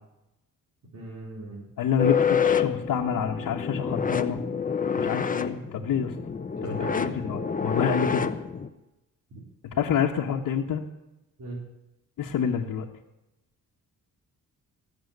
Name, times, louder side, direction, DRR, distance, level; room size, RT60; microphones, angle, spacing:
voice 1, 0.9-1.6 6.6-6.9 9.3-9.4 11.4-11.6, right 2 dB, 60° right, -5 dB, 4.3 m, -39 dB
voice 2, 1.8-4.4 4.9-6.1 6.6-8.3 9.7-10.8 12.2-12.9, left 7 dB, 70° left, -2 dB, 1.4 m, -27 dB
sound 1, 2.0-8.7, left 6 dB, 25° left, 0.9 m, -27 dB
18.5 x 7.5 x 8.1 m, 0.96 s
cardioid pair, 110°, 34 cm